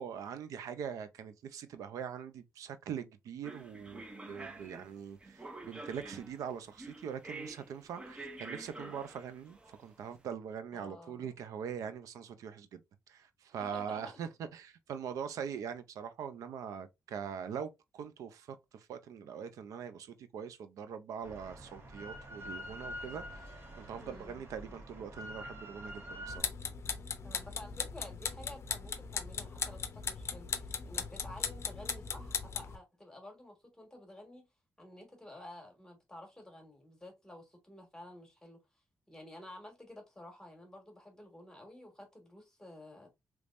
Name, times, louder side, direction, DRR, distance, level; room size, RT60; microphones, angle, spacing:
voice 1, 0.0-12.8 13.1-23.2 23.5-26.5, right 7 dB, 90° right, 0.5 m, -42 dB
sound 1, 3.4-10.1, right 2 dB, 20° right, 0.6 m, -48 dB
voice 2, 10.7-11.4 13.6-14.2 24.0-24.4 27.2-34.5 34.8-38.6 39.1-43.1, left 1 dB, 10° left, 1.4 m, -51 dB
Drill, 21.2-26.4, equal, 45° right, 1.1 m, -46 dB
sound 2, 26.3-32.8, left 6 dB, 50° left, 0.5 m, -38 dB
3.4 x 3.0 x 2.5 m
cardioid pair, 105°, 6 cm